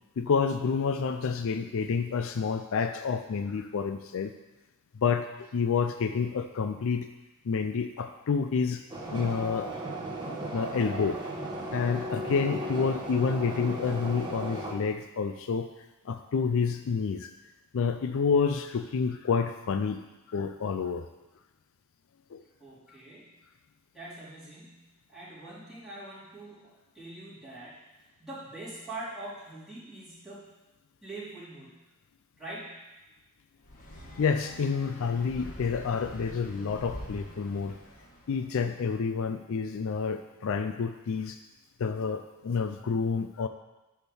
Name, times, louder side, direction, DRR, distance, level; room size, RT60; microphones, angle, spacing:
voice 1, 0.2-4.3 4.9-7.1 7.4-8.8 9.1-9.7 10.5-11.2 11.7-15.7 16.0-17.3 17.7-20.0 20.3-21.1 22.3-22.4 34.2-37.7 38.3-41.4 41.8-43.5, left 5 dB, 65° left, 8 dB, 0.4 m, -29 dB
sound 1, 8.9-14.7, right 1 dB, 20° right, 1.1 m, -36 dB
voice 2, 22.6-23.3 23.9-30.5 31.0-31.9 32.4-32.9, right 2 dB, 5° right, -12 dB, 3.5 m, -44 dB
sound 2, 33.6-38.5, equal, 40° left, 1.3 m, -45 dB
10.5 x 3.7 x 6.9 m, 1.0 s
head